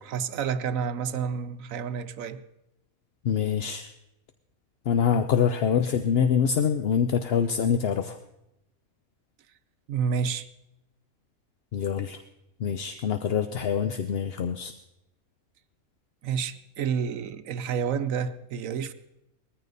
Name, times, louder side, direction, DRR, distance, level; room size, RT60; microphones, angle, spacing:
voice 1, 0.0-2.4 5.1-5.3 9.9-10.5 12.9-13.0 16.2-18.9, right 7 dB, 70° right, 1.1 m, -30 dB
voice 2, 3.2-3.9 4.9-8.2 11.7-12.2 12.6-14.7, left 7 dB, 55° left, 0.8 m, -25 dB
19.0 x 14.5 x 4.0 m
omnidirectional pair, 1.5 m